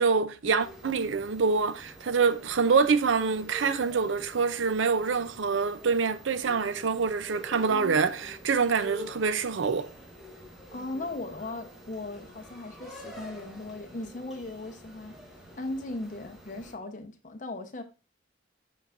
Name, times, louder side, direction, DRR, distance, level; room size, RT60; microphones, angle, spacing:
voice 1, 0.0-9.9, right 5 dB, 85° right, 0.5 m, -26 dB
sound 1, 0.6-16.7, equal, 5° right, 1.3 m, -47 dB
voice 2, 10.7-15.2 15.6-17.8, left 2 dB, 40° left, 0.8 m, -38 dB
7.2 x 5.5 x 2.5 m
head